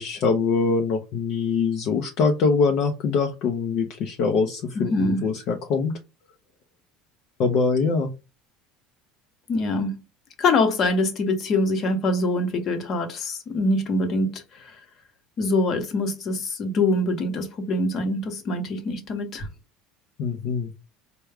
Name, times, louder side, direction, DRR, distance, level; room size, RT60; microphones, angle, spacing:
voice 1, 0.0-5.9 7.4-8.1 20.2-20.7, left 5 dB, 50° left, 0.5 m, -23 dB
voice 2, 4.7-5.2 9.5-10.0 10.4-14.7 15.4-19.5, left 2 dB, 35° left, 0.9 m, -24 dB
4.5 x 2.2 x 3.4 m
cardioid pair, 150°, 0 cm